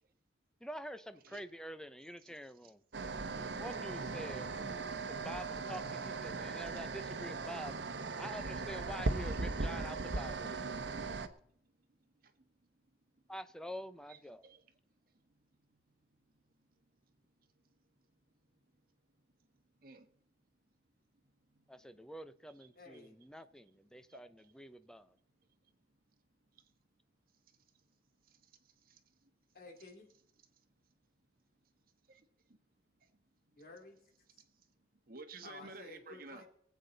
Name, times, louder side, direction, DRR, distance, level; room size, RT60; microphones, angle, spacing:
voice 1, 0.6-2.8 3.6-4.5 5.1-7.7 8.2-10.5 13.3-14.5 21.7-25.1, equal, 5° left, 0.6 m, -47 dB
sound 1, 2.9-11.3, right 3 dB, 75° right, 0.9 m, -38 dB
voice 2, 11.1-12.9 14.1-14.6 15.1-15.8 16.2-16.7 17.0-17.1 17.4-17.8 19.4-20.1 21.2-21.7 22.6-22.7 24.1-24.6 24.9-25.0 26.5-26.7 27.5-27.8 28.2-29.3 30.6-30.7 31.6-31.7 32.0-32.6 33.0-33.1 34.4-34.7 35.0-36.4, right 3 dB, 55° right, 1.3 m, -57 dB
voice 3, 22.7-23.1 29.5-30.1 33.6-34.0 35.4-36.4, left 3 dB, 55° left, 2.9 m, -53 dB
23.0 x 8.4 x 4.0 m
head